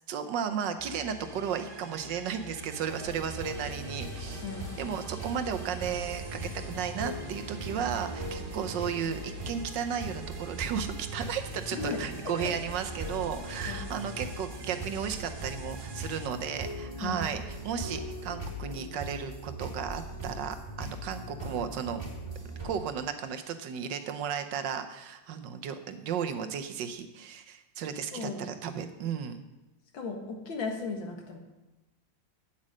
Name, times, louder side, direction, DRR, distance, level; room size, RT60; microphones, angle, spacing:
voice 1, 0.1-4.4 4.8-22.0 22.6-29.4, right 8 dB, 70° right, 8 dB, 1.4 m, -34 dB
sound 1, 0.8-16.3, right 2 dB, 40° right, 0.8 m, -46 dB
sound 2, 2.7-10.7, left 4 dB, 55° left, 1.7 m, -52 dB
sound 3, 2.9-22.7, right 1 dB, 15° right, 2.3 m, -40 dB
voice 2, 28.1-28.9 29.9-31.4, left 4 dB, 75° left, 2 dB, 2.3 m, -36 dB
8.7 x 8.5 x 6.3 m, 1.0 s
omnidirectional pair, 2.1 m